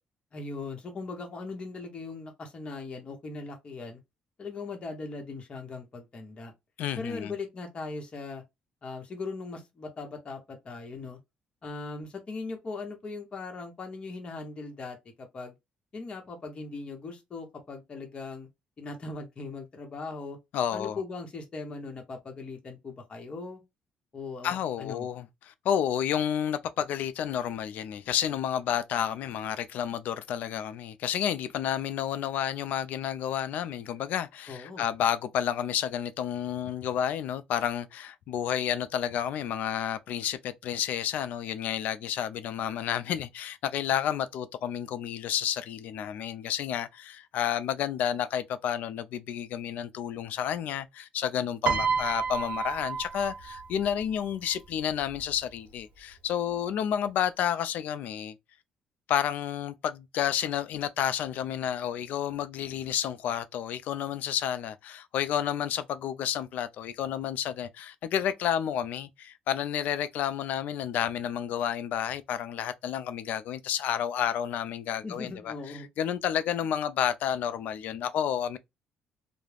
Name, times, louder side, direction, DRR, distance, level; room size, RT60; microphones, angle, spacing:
voice 1, 0.3-4.0 4.4-6.5 7.0-8.4 8.8-11.2 11.6-15.5 15.9-18.5 18.8-20.4 20.7-23.6 24.1-25.1 34.5-34.9 75.0-75.9, left 3 dB, 40° left, 0.9 m, -39 dB
voice 2, 6.8-7.3 20.5-21.0 24.4-58.4 59.1-78.6, left 9 dB, 70° left, 0.3 m, -30 dB
Piano, 51.7-54.0 55.1-55.3, right 6 dB, 60° right, 0.6 m, -30 dB
2.3 x 2.0 x 3.2 m
cardioid pair, 100°, 3 cm